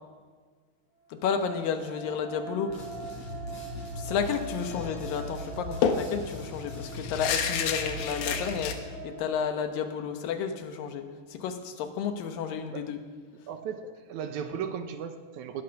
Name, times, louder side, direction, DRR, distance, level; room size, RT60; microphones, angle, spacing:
sound 1, 1.0-10.3, right 3 dB, 55° right, 6.0 m, -44 dB
voice 1, 1.1-2.9 3.5-3.6 4.0-8.8 9.0-13.0, left 7 dB, 85° left, 7 dB, 2.9 m, -32 dB
sound 2, 2.7-8.7, equal, 50° left, 6.6 m, -39 dB
sound 3, 4.7-4.9 5.2-5.3 5.8-8.8, left 7 dB, 70° left, 2.4 m, -30 dB
voice 2, 13.5-15.6, right 7 dB, 75° right, 8 dB, 2.1 m, -36 dB
20.0 x 12.0 x 5.8 m, 1.5 s
omnidirectional pair, 3.9 m